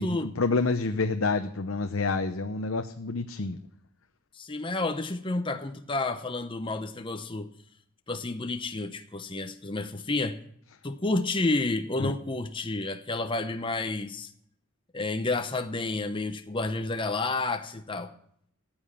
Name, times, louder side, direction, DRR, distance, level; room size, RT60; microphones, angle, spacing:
voice 1, 0.0-3.6 12.0-12.1, left 3 dB, 70° left, 0.8 m, -28 dB
voice 2, 4.3-7.5 8.1-10.4 10.8-14.3 14.9-18.1, left 2 dB, 25° left, 0.8 m, -30 dB
14.5 x 8.8 x 7.2 m
head